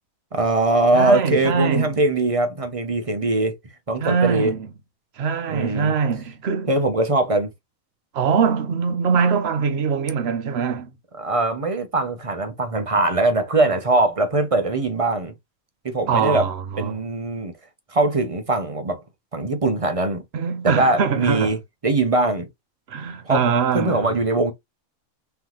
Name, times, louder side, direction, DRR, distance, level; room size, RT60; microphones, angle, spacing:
voice 1, 0.3-3.6 3.9-4.5 5.5-5.9 6.7-7.5 11.2-15.3 15.8-16.5 16.8-17.5 17.9-19.0 19.3-20.2 20.6-21.6 21.8-22.5 23.3-23.4 23.7-24.5, right 2 dB, 35° right, 0.6 m, -21 dB
voice 2, 0.9-2.0 4.0-4.7 5.2-6.7 8.1-11.0 16.1-17.0 20.3-21.6 22.9-24.1, right 6 dB, 55° right, 0.9 m, -23 dB
3.8 x 3.4 x 3.0 m
omnidirectional pair, 1.5 m